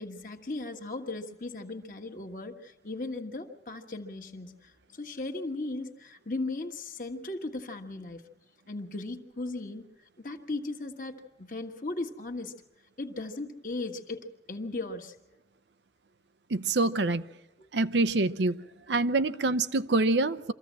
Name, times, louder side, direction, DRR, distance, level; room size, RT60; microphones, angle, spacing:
voice 1, 0.0-8.2 8.7-9.8 10.2-12.5 13.0-15.2 17.6-17.7, left 2 dB, 50° left, 5 dB, 1.5 m, -37 dB
voice 2, 16.5-17.2 17.7-18.6 18.9-20.5, right 2 dB, 85° right, 13 dB, 0.7 m, -26 dB
24.5 x 15.0 x 7.5 m, 1.0 s
head